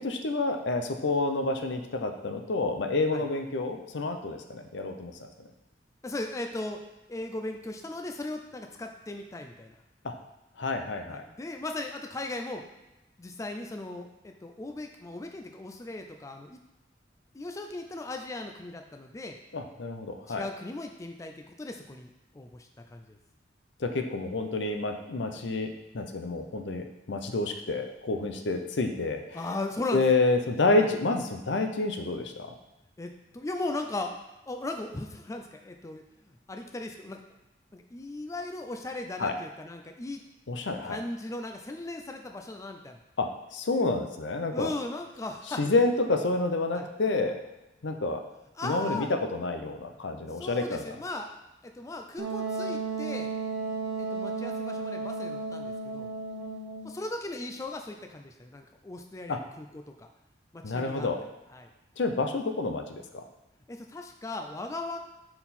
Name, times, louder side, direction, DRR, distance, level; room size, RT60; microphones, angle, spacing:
voice 1, 0.0-5.3 10.0-10.1 10.6-11.2 19.5-20.4 23.8-29.4 29.9-32.5 39.2-39.3 40.5-41.0 43.2-44.7 45.6-47.4 47.8-48.2 48.6-50.9 59.3-59.4 60.6-61.2 62.0-63.2, left 3 dB, 75° left, 5 dB, 0.6 m, -29 dB
voice 2, 6.0-6.8 7.1-9.8 11.1-12.6 13.2-16.6 17.3-19.4 20.3-23.2 25.3-25.4 29.3-30.0 30.8-30.9 33.0-34.1 34.5-37.2 37.7-40.2 40.8-43.0 44.5-45.8 46.7-46.9 48.6-49.1 50.3-51.3 51.6-53.3 54.0-56.1 56.8-60.1 60.5-61.2 61.5-61.7 63.7-65.0, left 2 dB, 15° left, 4 dB, 0.4 m, -37 dB
Wind instrument woodwind instrument, 52.2-57.0, right 4 dB, 65° right, 0.7 m, -34 dB
5.7 x 4.4 x 4.2 m, 0.97 s
head